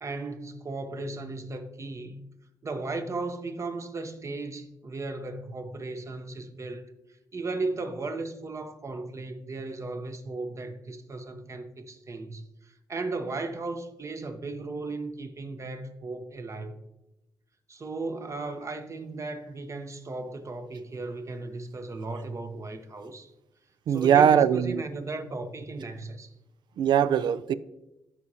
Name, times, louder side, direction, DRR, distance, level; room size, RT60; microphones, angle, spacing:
voice 1, 0.0-2.1 2.6-6.8 7.3-16.8 17.7-23.3 23.9-26.3, right 3 dB, 40° right, 1.0 m, -36 dB
voice 2, 23.9-24.7 26.8-27.5, right 8 dB, 75° right, 0.4 m, -21 dB
13.0 x 4.9 x 2.8 m
cardioid pair, 65°, 8 cm